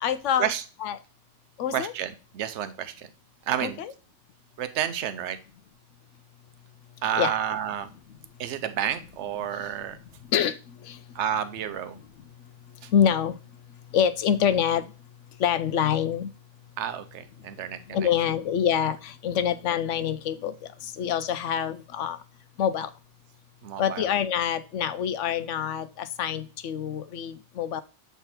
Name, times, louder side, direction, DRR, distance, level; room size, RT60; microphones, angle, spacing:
voice 1, 0.0-0.5 0.8-1.0 1.6-1.9 3.6-3.9 7.2-7.3 10.3-10.6 10.8-11.0 12.9-13.4 13.9-14.8 15.4-16.3 17.9-20.5 20.8-22.2 22.6-22.9 23.8-27.8, left 9 dB, 80° left, 13 dB, 1.0 m, -26 dB
voice 2, 1.7-3.1 3.5-3.8 4.6-5.4 7.0-7.9 8.4-10.0 11.1-12.0 12.8-12.9 16.8-18.1 23.6-24.1, right 10 dB, 70° right, 11 dB, 1.0 m, -30 dB
8.2 x 3.4 x 4.3 m, 0.34 s
omnidirectional pair, 1.2 m